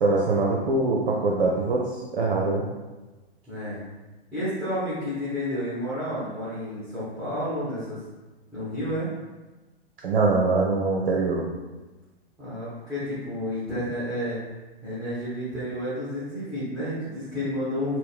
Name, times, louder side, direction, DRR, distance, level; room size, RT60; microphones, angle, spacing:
voice 1, 0.0-2.6 10.0-11.4, right 3 dB, 60° right, -2 dB, 0.6 m, -23 dB
voice 2, 3.5-3.8 4.3-8.0 8.5-9.1 12.4-14.4 14.8-18.0, equal, ahead, -13 dB, 1.4 m, -30 dB
4.3 x 2.1 x 3.6 m, 1.2 s
figure-of-eight pair, 110°, 32 cm